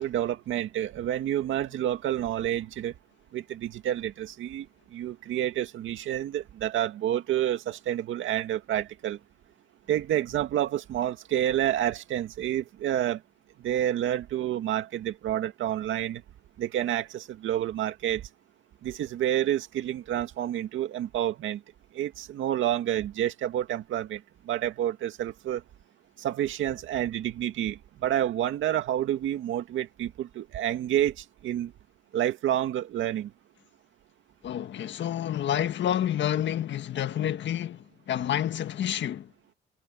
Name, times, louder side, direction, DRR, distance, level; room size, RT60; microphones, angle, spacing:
voice 1, 0.0-2.9 3.3-9.2 9.9-13.2 13.6-16.2 16.6-18.3 18.8-21.6 21.9-25.6 26.2-31.7 32.1-33.3, right 11 dB, 80° right, 2.2 m, -29 dB
voice 2, 34.4-39.3, left 10 dB, 65° left, 1.6 m, -29 dB
cardioid pair, 90°, 20 cm